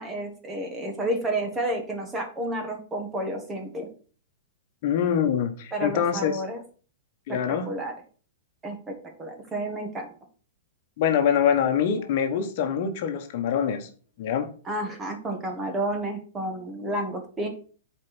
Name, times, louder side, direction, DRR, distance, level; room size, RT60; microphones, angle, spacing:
voice 1, 0.0-3.9 5.7-6.6 7.3-7.4 7.6-7.9 8.6-8.8 9.2-10.1 14.6-17.5, right 1 dB, 15° right, 4 dB, 1.7 m, -30 dB
voice 2, 4.8-6.4 7.3-7.7 11.0-13.9 14.2-14.5, left 8 dB, 50° left, 6 dB, 1.2 m, -24 dB
7.4 x 4.6 x 6.1 m, 0.41 s
hypercardioid pair, 150°, 0 cm